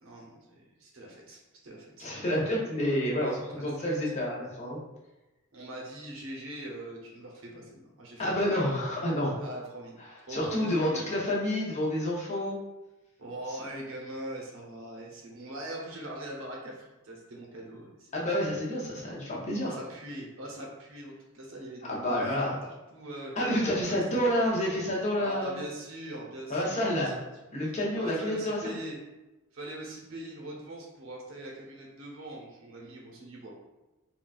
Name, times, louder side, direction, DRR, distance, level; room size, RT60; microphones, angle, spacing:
voice 1, 0.0-2.1 3.3-3.9 5.5-8.4 9.4-10.0 10.3-11.1 13.2-18.1 19.6-23.4 23.8-24.0 24.3-24.5 25.2-27.3 27.9-29.0 29.5-33.5, right 1 dB, 60° right, -2 dB, 0.7 m, -42 dB
voice 2, 2.0-4.8 8.2-9.3 10.3-12.6 18.1-19.7 21.9-22.6 23.4-25.6 26.5-27.1 27.5-28.7, equal, 30° left, -4 dB, 0.7 m, -29 dB
3.8 x 2.2 x 2.3 m, 1.1 s
head